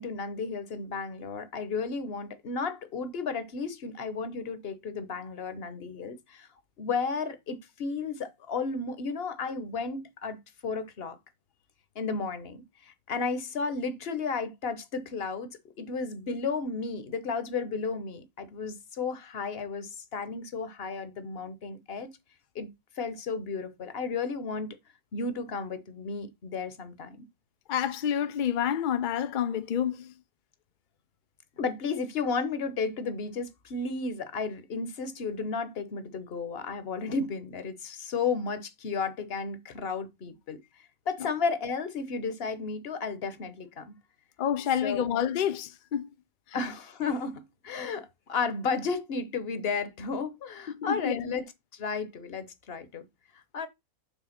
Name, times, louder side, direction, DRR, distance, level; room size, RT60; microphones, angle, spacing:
voice 1, 0.0-6.5 6.8-10.4 10.6-11.2 11.9-22.1 22.5-22.7 23.0-24.7 25.1-27.3 31.6-40.6 41.1-43.9 44.8-45.0 46.5-51.4 51.7-53.1 53.5-53.7, left 4 dB, 50° left, 1.1 m, -33 dB
voice 2, 27.7-30.1 44.4-46.1 46.5-46.6 50.7-51.3, left 9 dB, 70° left, 0.4 m, -29 dB
7.1 x 3.4 x 5.7 m
omnidirectional pair, 1.5 m